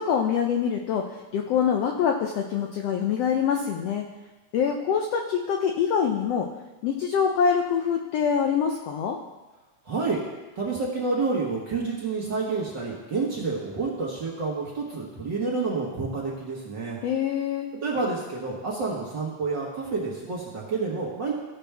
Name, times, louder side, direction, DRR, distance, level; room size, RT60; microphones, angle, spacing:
voice 1, 0.0-4.1 4.5-6.5 6.8-9.2 17.0-17.7, left 7 dB, 80° left, 3 dB, 1.4 m, -25 dB
voice 2, 9.8-10.2 10.5-17.0 17.8-21.3, right 4 dB, 50° right, -4 dB, 1.5 m, -29 dB
15.0 x 6.0 x 3.4 m, 1.2 s
omnidirectional pair, 3.5 m